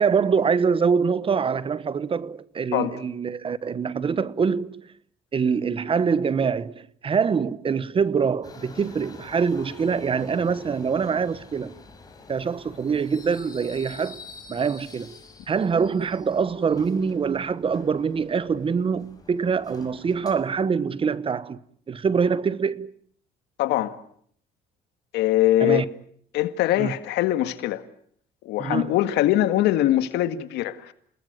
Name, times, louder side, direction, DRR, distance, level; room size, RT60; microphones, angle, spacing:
voice 1, 0.0-4.9 5.3-11.8 12.3-14.2 14.5-15.2 15.5-21.6 21.9-22.9 25.6-25.8 26.8-26.9 28.6-29.0, right 6 dB, 30° right, 1.0 m, -24 dB
Subway metro underground, 8.4-20.4, left 4 dB, 20° left, 5.8 m, -47 dB
voice 2, 23.6-24.0 25.1-25.9 26.3-27.8 28.4-30.9, left 14 dB, 85° left, 1.9 m, -22 dB
29.5 x 19.0 x 9.2 m
cardioid pair, 110°, 17 cm